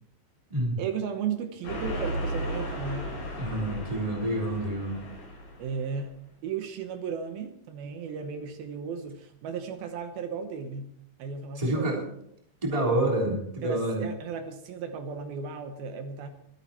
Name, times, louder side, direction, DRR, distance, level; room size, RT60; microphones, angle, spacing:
voice 1, 0.8-3.2 5.6-6.1 6.4-10.9 11.2-12.0 13.6-16.3, right 6 dB, 70° right, 7 dB, 2.4 m, -35 dB
sound 1, 1.6-5.8, equal, 90° left, 10.0 m, -35 dB
voice 2, 3.4-5.0 11.5-12.0 12.6-14.0, right 1 dB, 10° right, -2 dB, 3.0 m, -28 dB
23.5 x 8.9 x 4.4 m, 0.73 s
omnidirectional pair, 5.4 m